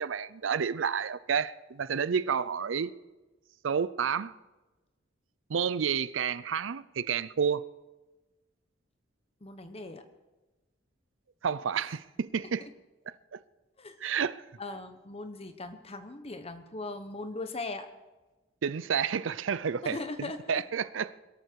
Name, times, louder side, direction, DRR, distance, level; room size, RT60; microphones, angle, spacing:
voice 1, 0.0-2.9 3.6-4.3 5.5-7.6 11.4-12.7 13.3-13.4 14.0-14.4 18.6-21.1, right 7 dB, 75° right, 0.5 m, -30 dB
voice 2, 9.4-10.0 11.8-11.9 12.6-12.7 13.8-14.1 14.6-17.9 19.8-20.4, left 2 dB, 30° left, 1.2 m, -39 dB
22.0 x 13.0 x 4.7 m
head